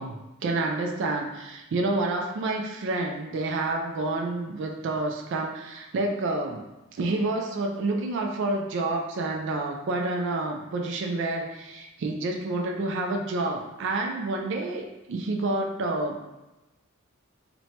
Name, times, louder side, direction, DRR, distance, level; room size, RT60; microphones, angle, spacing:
voice 1, 0.0-6.6 6.9-16.2, right 2 dB, 60° right, 2 dB, 0.3 m, -29 dB
2.9 x 2.1 x 2.7 m, 1.0 s
head